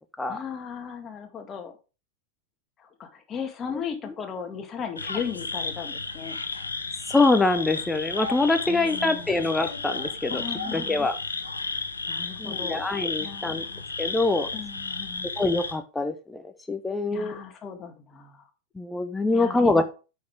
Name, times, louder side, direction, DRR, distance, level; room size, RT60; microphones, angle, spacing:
voice 1, 0.3-1.7 2.8-6.4 8.7-9.3 10.3-11.1 12.1-12.8 13.2-13.9 14.5-15.3 17.1-18.5 19.3-19.8, left 7 dB, 25° left, 5 dB, 1.8 m, -36 dB
sound 1, 5.0-15.7, left 4 dB, 75° left, 1.1 m, -33 dB
voice 2, 7.1-10.4 10.7-11.2 12.4-13.6 14.0-14.5 15.4-17.4 18.8-19.8, left 3 dB, 10° left, 8 dB, 0.7 m, -24 dB
8.5 x 6.2 x 3.4 m, 0.32 s
figure-of-eight pair, 90°, 0 cm